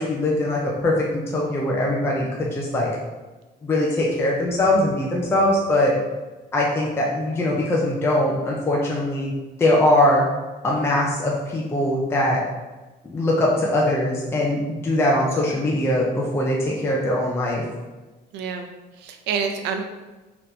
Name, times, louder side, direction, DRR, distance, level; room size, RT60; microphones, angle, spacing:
voice 1, 0.0-2.9 3.6-5.9 6.5-9.3 9.6-10.3 10.6-12.4 13.0-17.7, left 1 dB, 15° left, -3 dB, 0.4 m, -21 dB
voice 2, 18.3-19.8, right 6 dB, 80° right, 5 dB, 0.6 m, -28 dB
3.6 x 2.9 x 3.8 m, 1.2 s
cardioid pair, 165°, 17 cm